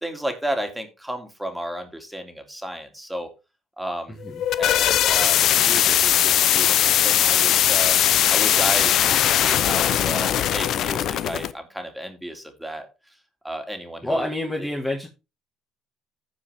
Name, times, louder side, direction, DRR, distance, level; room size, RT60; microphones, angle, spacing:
voice 1, 0.0-3.3 3.8-4.2 4.6-8.0 8.3-9.0 9.3-12.9 13.4-14.3 14.6-14.8, right 1 dB, 5° right, 5 dB, 2.4 m, -32 dB
voice 2, 4.1-4.4 14.0-15.1, left 1 dB, 15° left, 0 dB, 1.7 m, -27 dB
sound 1, 4.2-11.5, left 11 dB, 65° left, 0.6 m, -20 dB
14.5 x 5.0 x 3.5 m, 0.28 s
cardioid pair, 95°, 0 cm